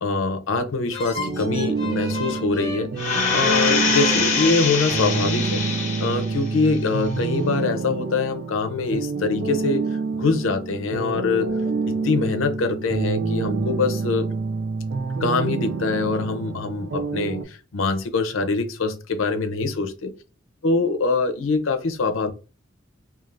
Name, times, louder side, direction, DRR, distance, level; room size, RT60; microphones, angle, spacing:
voice 1, 0.0-5.6 6.0-9.8 10.1-11.5 11.9-14.3 15.2-19.9 20.6-22.3, left 3 dB, 90° left, 0.6 m, -24 dB
sound 1, 0.9-6.4, left 2 dB, 20° right, 1.4 m, -35 dB
sound 2, 1.2-17.4, right 4 dB, 60° right, 0.4 m, -27 dB
sound 3, 3.0-6.4 6.8-6.9, left 5 dB, 40° left, 0.7 m, -24 dB
3.3 x 2.4 x 2.5 m
head